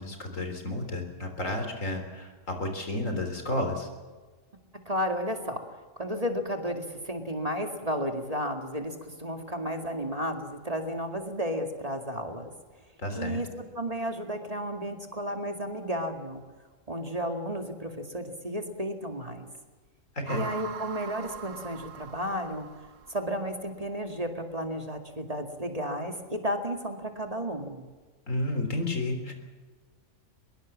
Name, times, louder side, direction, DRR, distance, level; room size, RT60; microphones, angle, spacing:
voice 1, 0.0-3.9 13.0-13.4 20.2-20.4 28.3-29.3, left 1 dB, 80° left, 5 dB, 4.0 m, -31 dB
voice 2, 4.9-5.6 6.0-12.5 13.2-13.5 13.8-16.4 16.9-19.5 20.3-22.7 23.1-27.9, equal, 30° right, 4 dB, 2.2 m, -33 dB
sound 1, 20.3-23.6, right 7 dB, 75° right, 1.5 m, -42 dB
22.5 x 22.0 x 7.4 m, 1.4 s
omnidirectional pair, 1.3 m